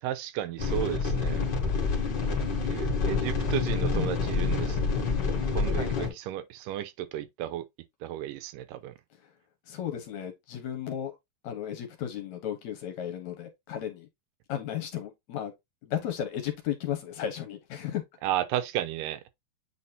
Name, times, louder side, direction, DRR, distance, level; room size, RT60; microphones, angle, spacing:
voice 1, 0.0-1.4 2.3-2.4 2.7-4.8 5.5-7.6 8.0-8.9 18.2-19.2, right 13 dB, 80° right, 2.3 m, -33 dB
sound 1, 0.6-6.1, left 4 dB, 40° left, 1.9 m, -27 dB
voice 2, 5.7-6.2 9.7-11.2 11.4-14.1 14.5-15.5 15.8-18.0, left 10 dB, 65° left, 2.2 m, -34 dB
8.5 x 4.1 x 2.8 m
omnidirectional pair, 3.9 m